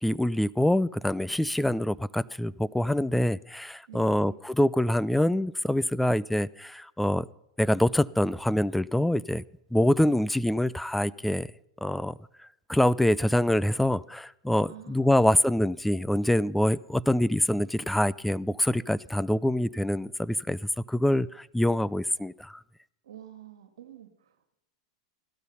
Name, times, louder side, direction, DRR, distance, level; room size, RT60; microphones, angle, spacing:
voice 1, 0.0-7.2 7.6-9.4 9.7-11.5 11.8-12.1 12.7-20.6 20.9-22.6, left 1 dB, 5° left, 19 dB, 0.4 m, -25 dB
voice 2, 3.9-4.4 14.7-15.6 23.0-24.5, right 11 dB, 80° right, 9 dB, 1.9 m, -49 dB
16.0 x 12.5 x 5.6 m, 0.84 s
hypercardioid pair, 110°, 3 cm